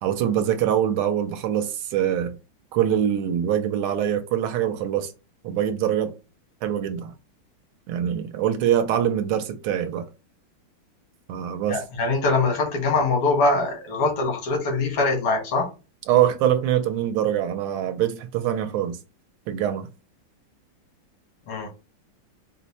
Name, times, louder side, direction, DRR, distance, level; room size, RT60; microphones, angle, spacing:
voice 1, 0.0-2.4 2.7-5.1 5.4-6.1 6.6-7.1 7.9-10.1 11.3-11.8 16.1-19.0 19.5-19.9, right 10 dB, 80° right, 1.4 m, -24 dB
voice 2, 11.7-15.7 21.5-21.7, left 3 dB, 90° left, 2.2 m, -23 dB
4.8 x 2.1 x 4.0 m
omnidirectional pair, 2.4 m